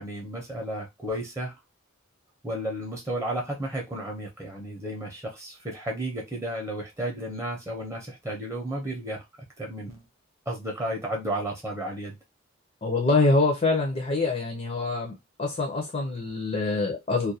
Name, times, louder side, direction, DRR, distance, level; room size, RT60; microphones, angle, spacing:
voice 1, 0.0-1.6 2.4-9.2 9.6-10.1 10.5-12.2, right 1 dB, 15° right, 0.7 m, -33 dB
voice 2, 12.8-17.3, left 3 dB, 30° left, 0.5 m, -25 dB
2.4 x 2.2 x 2.7 m
head